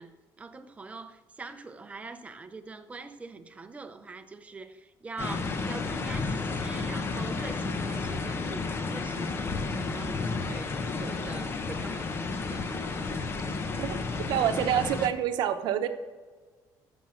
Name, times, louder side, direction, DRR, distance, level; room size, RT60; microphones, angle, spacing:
voice 1, 0.0-12.7, right 3 dB, 15° right, 0.7 m, -43 dB
sound 1, 5.2-15.1, left 4 dB, 30° left, 0.9 m, -32 dB
voice 2, 14.3-15.9, right 10 dB, 75° right, 0.9 m, -26 dB
14.5 x 6.1 x 6.3 m
cardioid pair, 145°, 8 cm